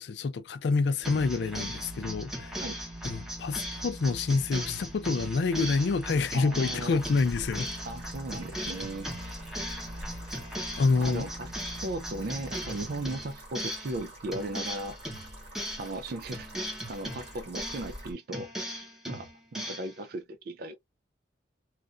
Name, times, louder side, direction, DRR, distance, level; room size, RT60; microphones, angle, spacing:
voice 1, 0.0-2.6 3.0-7.7 9.5-10.3 10.8-11.3, left 4 dB, 70° left, 0.4 m, -28 dB
sound 1, 1.0-14.0 14.3-16.0 16.3-18.0 18.3-19.9, equal, 5° right, 0.8 m, -38 dB
voice 2, 6.3-7.0 7.8-9.1 11.0-11.5 11.8-15.3 15.8-16.5 16.9-18.5 19.1-20.8, right 2 dB, 55° right, 0.4 m, -37 dB
sound 2, 7.0-18.1, right 1 dB, 35° right, 1.9 m, -47 dB
3.1 x 2.4 x 2.4 m
head